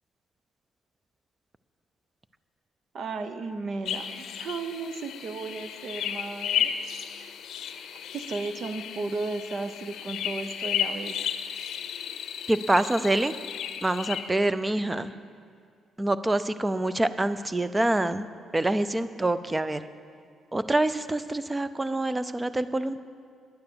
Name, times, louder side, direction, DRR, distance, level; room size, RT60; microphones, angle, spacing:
voice 1, 2.9-7.0 7.9-11.1, right 3 dB, 55° right, 9 dB, 0.8 m, -35 dB
sound 1, 3.9-14.3, left 9 dB, 75° left, 0.6 m, -33 dB
voice 2, 12.5-13.3 13.8-15.1 16.0-18.3 18.5-19.8 20.5-23.0, right 1 dB, 15° right, 13 dB, 0.5 m, -26 dB
10.5 x 9.1 x 7.1 m, 2.2 s
cardioid pair, 90°, 0 cm